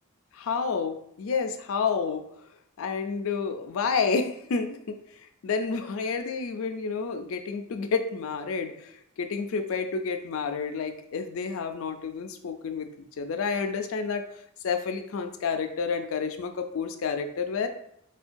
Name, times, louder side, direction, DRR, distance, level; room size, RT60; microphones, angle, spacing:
voice 1, 0.3-2.2 2.8-14.2 14.6-17.7, left 5 dB, 70° left, 7 dB, 0.4 m, -30 dB
4.4 x 2.3 x 2.5 m, 0.72 s
head